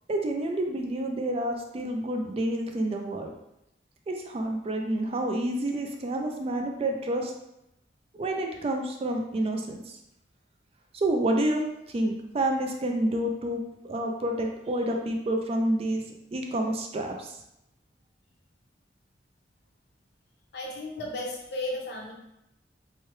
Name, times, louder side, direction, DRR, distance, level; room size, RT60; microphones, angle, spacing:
voice 1, 0.1-3.3 4.1-7.3 8.2-9.9 10.9-11.6 11.9-16.0 16.3-17.3, right 1 dB, 35° right, 3 dB, 0.3 m, -29 dB
voice 2, 20.5-22.1, left 1 dB, 60° left, -1 dB, 0.7 m, -34 dB
3.1 x 2.2 x 3.1 m, 0.84 s
head